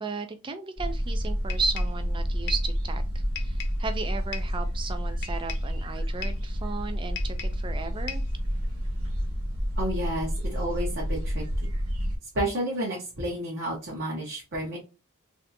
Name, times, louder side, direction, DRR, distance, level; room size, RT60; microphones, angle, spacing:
voice 1, 0.0-8.2, right 4 dB, 20° right, 0.4 m, -35 dB
sound 1, 0.8-12.2, equal, 70° right, 1.2 m, -29 dB
sound 2, 1.5-2.0 2.5-2.7 3.4-3.8 4.3-4.6 5.2-5.7 6.2-6.5 7.2-7.6 8.1-8.4, left 9 dB, 55° left, 0.6 m, -39 dB
voice 2, 9.8-11.7 12.3-14.8, right 1 dB, 50° right, 0.9 m, -31 dB
3.2 x 2.7 x 2.6 m
head